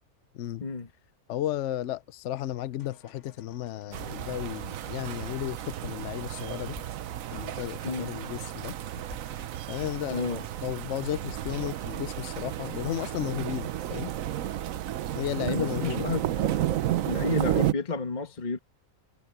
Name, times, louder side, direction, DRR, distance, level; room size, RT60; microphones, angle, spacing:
voice 1, 0.3-0.7 1.3-6.8 7.3-8.7 9.7-10.2 10.6-14.1 15.2-16.1, left 13 dB, 65° left, 0.8 m, -34 dB
sound 1, 2.8-12.2, left 4 dB, 80° left, 2.2 m, -52 dB
sound 2, 3.9-17.7, right 12 dB, 70° right, 1.1 m, -32 dB
voice 2, 10.1-10.4 15.4-16.5 17.1-18.6, left 4 dB, 30° left, 1.5 m, -31 dB
omnidirectional pair, 1.6 m